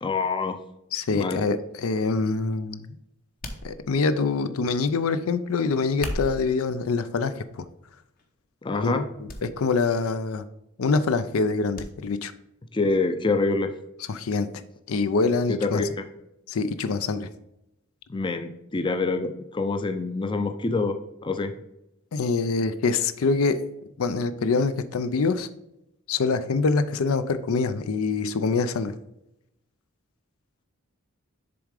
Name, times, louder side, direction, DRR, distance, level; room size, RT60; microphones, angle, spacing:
voice 1, 0.0-0.6 1.1-1.4 8.6-9.0 12.7-13.7 15.5-16.0 18.1-21.0 21.2-21.5, left 3 dB, 20° left, 7 dB, 0.4 m, -26 dB
voice 2, 0.9-3.0 3.6-7.6 8.8-10.4 10.8-12.3 14.1-14.5 14.9-15.8 16.5-17.3 22.1-23.6 24.0-25.5 26.1-28.9, left 4 dB, 80° left, 12 dB, 0.5 m, -25 dB
sound 1, 3.4-4.2 5.8-6.6 7.3-7.7 8.2-8.3 9.3-9.5 9.7-9.8 11.7-11.9 12.3-12.4, left 1 dB, 45° left, 0.8 m, -35 dB
6.9 x 3.6 x 4.8 m, 0.86 s
head